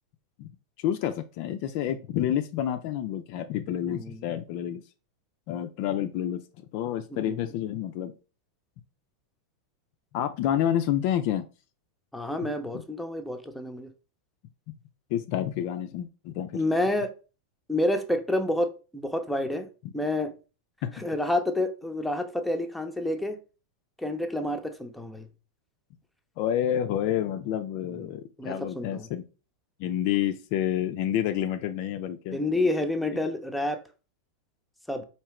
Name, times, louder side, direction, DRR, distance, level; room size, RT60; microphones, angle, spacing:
voice 1, 0.8-4.8 5.5-6.4 6.7-8.1 10.1-11.5 14.7-14.8 15.1-16.6 20.8-20.9 26.4-29.2 29.8-32.4, left 10 dB, 45° left, 0.4 m, -29 dB
voice 2, 3.9-4.2 7.1-7.5 12.1-13.9 16.5-17.1 17.7-19.7 19.9-20.3 20.9-23.4 24.0-25.3 28.4-29.1 32.3-33.8 34.9-35.0, left 1 dB, ahead, 0.6 m, -29 dB
4.6 x 2.8 x 3.1 m
figure-of-eight pair, 90°, 0 cm